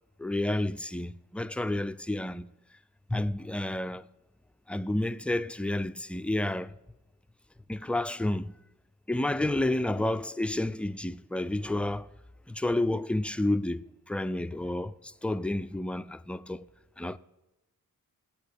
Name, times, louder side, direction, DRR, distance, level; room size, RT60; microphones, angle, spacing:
voice 1, 0.2-2.4 3.1-4.1 4.7-6.7 7.7-8.5 9.1-12.1 12.5-16.6 17.0-17.2, left 1 dB, 5° left, 0.3 m, -30 dB
8.8 x 8.7 x 7.9 m
cardioid pair, 65°, 36 cm